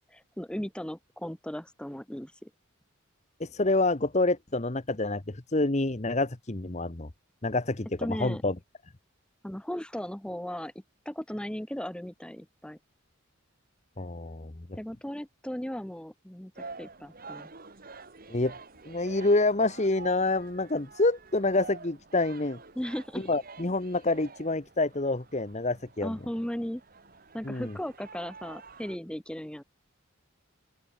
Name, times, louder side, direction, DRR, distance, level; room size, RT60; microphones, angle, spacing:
voice 1, 0.0-2.5 8.0-8.4 9.4-10.7 11.1-12.8 14.7-16.5 16.8-17.5 22.8-23.3 26.0-26.8 27.3-29.6, equal, 5° left, 0.6 m, -36 dB
voice 2, 3.4-7.1 7.4-8.5 14.0-14.8 18.3-18.5 18.9-22.6 23.3-26.1 27.4-27.7, left 2 dB, 30° left, 1.1 m, -27 dB
sound 1, 16.5-29.0, right 4 dB, 40° right, 2.1 m, -48 dB
open air
head